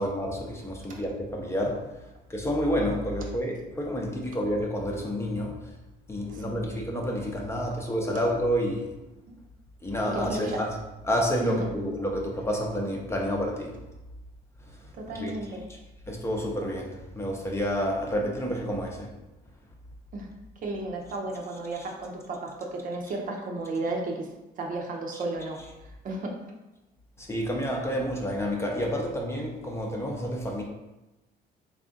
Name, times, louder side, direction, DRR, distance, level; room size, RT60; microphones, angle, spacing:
voice 1, 0.0-1.8 2.3-5.5 6.1-9.0 9.8-10.7 11.0-13.7 15.1-15.3 16.1-19.1 27.2-30.6, equal, 15° left, 0 dB, 0.6 m, -29 dB
voice 2, 10.1-10.6 11.4-11.7 14.9-15.6 20.1-20.3 20.6-25.6 26.0-26.3, right 2 dB, 50° right, 1 dB, 0.7 m, -33 dB
3.5 x 2.4 x 3.7 m, 1.0 s
cardioid pair, 110°, 17 cm